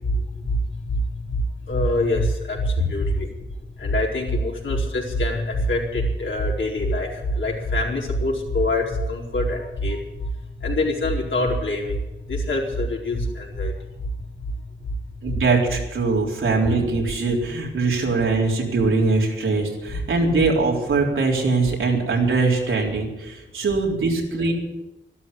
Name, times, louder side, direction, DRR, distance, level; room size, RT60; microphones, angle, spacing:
voice 1, 0.0-3.3 3.8-10.0 10.3-13.9 14.2-14.3 14.6-14.7, left 1 dB, 70° left, -2 dB, 4.5 m, -25 dB
voice 2, 15.2-24.5, right 3 dB, 85° right, -1 dB, 3.9 m, -22 dB
13.0 x 12.5 x 8.5 m, 0.99 s
cardioid pair, 75°, 20 cm